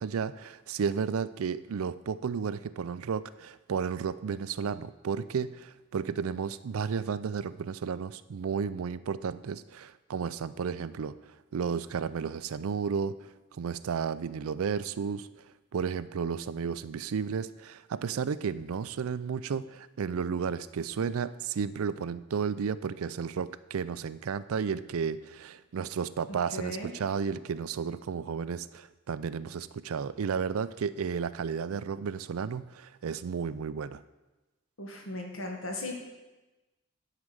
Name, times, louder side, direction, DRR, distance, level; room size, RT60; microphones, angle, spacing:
voice 1, 0.0-11.1 11.5-13.3 13.6-15.4 15.7-34.0, right 6 dB, 80° right, 15 dB, 0.4 m, -33 dB
voice 2, 26.5-26.9 34.8-36.0, left 1 dB, 70° left, 1 dB, 1.8 m, -37 dB
9.6 x 5.0 x 7.7 m, 1.1 s
head